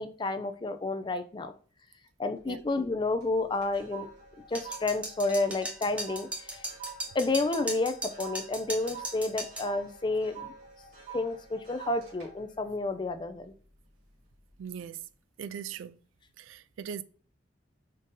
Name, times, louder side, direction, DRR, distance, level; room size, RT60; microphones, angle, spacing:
voice 1, 0.0-1.5 2.2-4.1 4.5-6.6 7.1-10.5 11.1-13.5, left 2 dB, 25° left, 0.3 m, -30 dB
sound 1, 2.4-2.9 3.2-13.8 14.2-14.5, right 6 dB, 60° right, 2.4 m, -47 dB
sound 2, 4.6-9.7, right 1 dB, 5° right, 0.7 m, -37 dB
voice 2, 14.6-15.0 15.4-16.0 16.4-17.0, right 8 dB, 90° right, 0.3 m, -39 dB
5.3 x 2.7 x 3.6 m
head